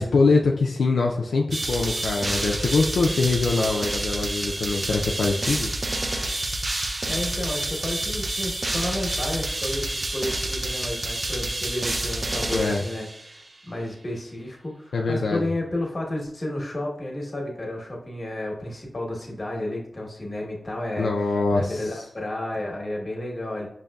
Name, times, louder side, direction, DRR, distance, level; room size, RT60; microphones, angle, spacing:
voice 1, 0.0-5.7 12.5-12.8 14.9-15.5 21.0-21.8, left 3 dB, 90° left, -1 dB, 0.3 m, -23 dB
sound 1, 1.5-13.4, right 2 dB, 50° right, 0.5 m, -28 dB
voice 2, 7.1-23.7, left 1 dB, 45° left, -1 dB, 1.0 m, -32 dB
5.1 x 2.6 x 2.2 m, 0.72 s
cardioid pair, 45°, 0 cm